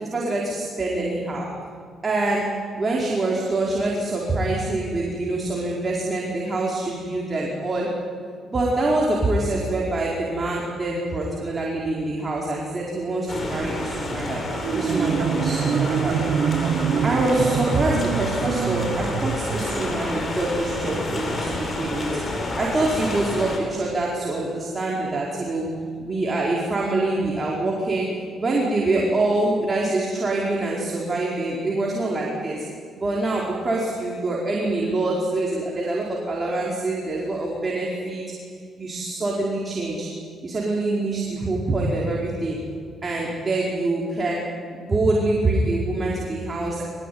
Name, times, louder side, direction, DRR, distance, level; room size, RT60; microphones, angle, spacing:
voice 1, 0.0-1.6 2.0-8.0 8.5-14.4 14.7-16.2 17.0-25.7 26.0-32.7 33.0-38.2 38.8-40.1 40.4-42.6 43.0-46.8, right 2 dB, 30° right, -3 dB, 4.9 m, -25 dB
sound 1, 13.3-23.6, left 1 dB, 35° left, 7.5 m, -29 dB
Marimba xylophone, 14.5-20.1, right 8 dB, 70° right, 1.0 m, -25 dB
23.5 x 22.0 x 9.7 m, 2.3 s
cardioid pair, 90°, 0 cm